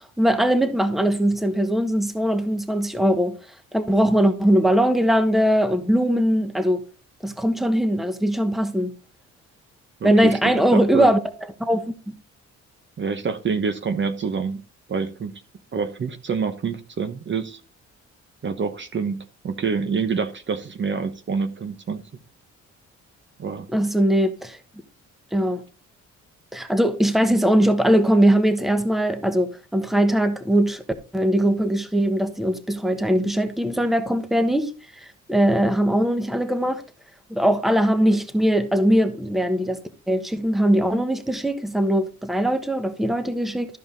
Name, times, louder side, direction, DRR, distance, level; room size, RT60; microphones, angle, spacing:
voice 1, 0.2-3.4 3.7-6.8 7.2-8.9 10.0-11.2 11.6-11.9 23.7-24.6 25.3-25.6 26.5-30.8 31.1-34.7 35.3-36.8 37.3-39.8 40.1-43.7, equal, ahead, 1.1 m, -20 dB
voice 2, 10.0-11.1 13.0-14.6 14.9-15.4 15.7-17.6 18.4-22.0 23.4-23.7, right 5 dB, 40° right, 1.0 m, -27 dB
13.0 x 5.2 x 3.8 m
cardioid pair, 90°, 30 cm